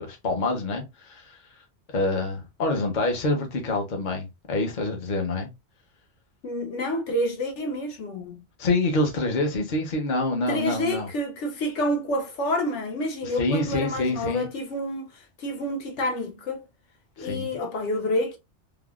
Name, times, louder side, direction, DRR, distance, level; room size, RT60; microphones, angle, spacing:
voice 1, 0.0-1.4 1.9-5.5 8.6-11.1 13.4-14.5 17.2-17.6, left 2 dB, 45° left, 0.9 m, -26 dB
voice 2, 6.4-8.4 10.5-16.6 17.2-18.4, left 1 dB, 80° left, 1.1 m, -28 dB
3.4 x 2.2 x 2.3 m
omnidirectional pair, 1.2 m